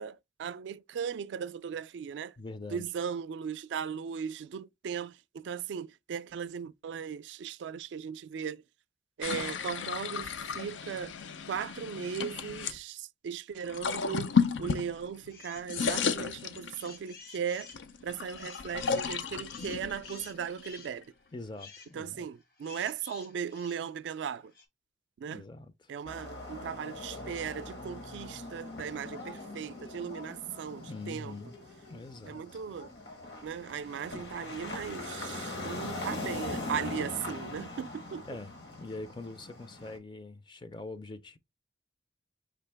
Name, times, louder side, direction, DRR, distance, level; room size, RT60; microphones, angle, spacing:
voice 1, 0.0-2.3 2.7-8.6 9.2-11.1 11.5-17.7 18.0-21.1 21.9-24.5 25.2-25.4 25.9-31.3 32.3-32.9 33.4-38.2, right 7 dB, 75° right, 0.3 m, -37 dB
voice 2, 2.4-2.9 21.3-22.3 25.3-25.9 30.9-31.6 31.9-32.6 38.3-41.4, left 2 dB, 25° left, 0.4 m, -43 dB
sound 1, 9.2-12.8 13.6-15.3 15.6-17.1 17.6-21.0, left 6 dB, 90° left, 0.5 m, -33 dB
sound 2, 15.3-16.1 16.5-24.6, left 5 dB, 55° left, 0.9 m, -52 dB
sound 3, 26.0-40.0, left 2 dB, 70° left, 1.3 m, -41 dB
5.0 x 2.9 x 3.3 m
head